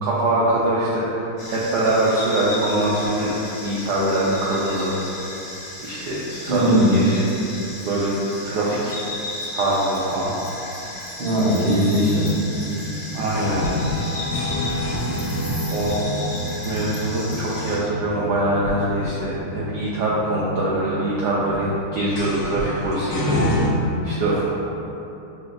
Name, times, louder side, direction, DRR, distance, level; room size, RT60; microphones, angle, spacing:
voice 1, 0.0-4.9 5.8-7.3 7.8-8.2 8.4-8.9 9.5-10.3 13.1-13.7 15.7-16.0 16.6-23.3 24.0-24.5, right 1 dB, 90° right, -7 dB, 0.9 m, -23 dB
sound 1, 1.4-17.8, left 1 dB, 45° left, 0.8 m, -35 dB
voice 2, 6.5-7.0 11.2-12.4, equal, 70° right, -8 dB, 0.5 m, -19 dB
sound 2, 11.9-23.7, equal, 70° left, 1.2 m, -28 dB
5.8 x 2.6 x 2.5 m, 2.9 s
omnidirectional pair, 2.4 m